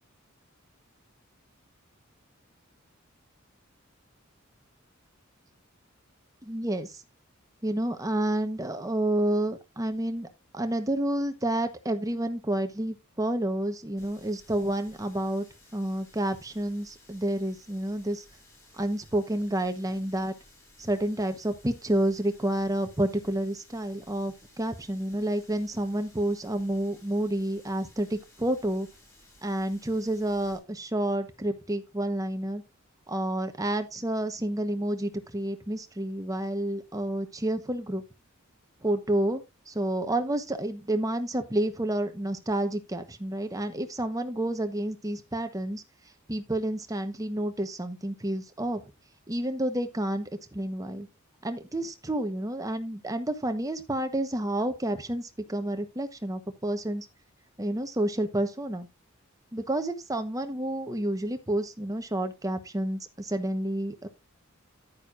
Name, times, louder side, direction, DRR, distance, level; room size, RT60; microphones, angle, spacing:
voice 1, 6.4-7.0 7.6-10.3 10.5-15.5 15.7-18.2 18.7-20.3 20.8-28.9 29.4-32.6 33.1-38.0 38.8-45.8 46.3-48.8 49.3-51.1 51.4-57.1 57.6-58.9 59.5-64.1, right 1 dB, 15° right, 1.1 m, -29 dB
Water tap faucet, 14.0-30.6, left 1 dB, 15° left, 6.2 m, -58 dB
10.5 x 9.4 x 2.5 m
head